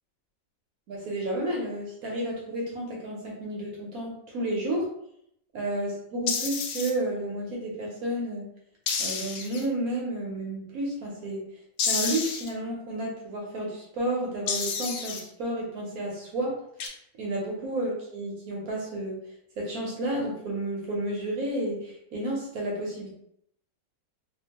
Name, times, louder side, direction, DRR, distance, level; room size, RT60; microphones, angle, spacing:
voice 1, 0.9-4.9 5.5-8.4 9.0-11.5 11.9-16.6 17.2-19.2 19.6-23.1, right 1 dB, 65° right, -2 dB, 1.0 m, -31 dB
sound 1, 6.3-6.9 8.9-9.7 11.8-12.5 14.5-15.2 16.8-16.9, left 5 dB, 85° left, 1.3 m, -29 dB
2.8 x 2.4 x 2.8 m, 0.73 s
omnidirectional pair, 2.0 m